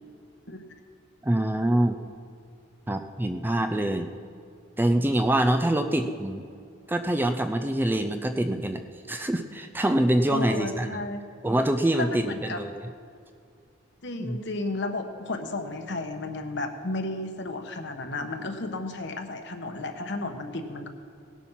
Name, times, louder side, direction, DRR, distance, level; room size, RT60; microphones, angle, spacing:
voice 1, 1.2-2.0 2.9-4.1 4.8-6.4 6.9-8.8 9.1-11.0 11.4-12.7 14.2-14.4, right 1 dB, 10° right, 7 dB, 0.4 m, -25 dB
voice 2, 10.3-11.2 12.0-12.6 14.0-20.9, left 2 dB, 60° left, 5 dB, 1.2 m, -33 dB
18.0 x 8.3 x 5.8 m, 2.4 s
head